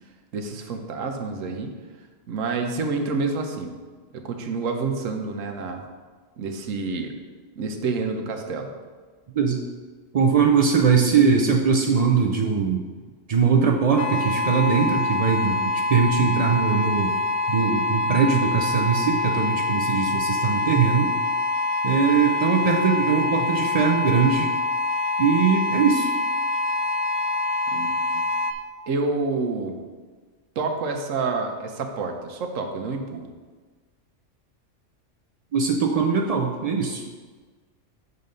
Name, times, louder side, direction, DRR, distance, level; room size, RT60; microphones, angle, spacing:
voice 1, 0.3-1.7 2.3-3.7 4.1-5.8 6.4-7.1 7.6-8.7 27.7-28.2 28.9-29.8 30.6-33.3, right 4 dB, 90° right, 5 dB, 1.1 m, -28 dB
voice 2, 10.1-12.8 13.3-15.6 15.9-17.1 17.5-21.1 21.8-24.5 25.2-26.1 35.5-37.1, right 6 dB, 75° right, 2 dB, 0.3 m, -21 dB
sound 1, 14.0-28.5, left 2 dB, 75° left, 0.9 m, -25 dB
6.8 x 4.0 x 5.2 m, 1.4 s
omnidirectional pair, 1.3 m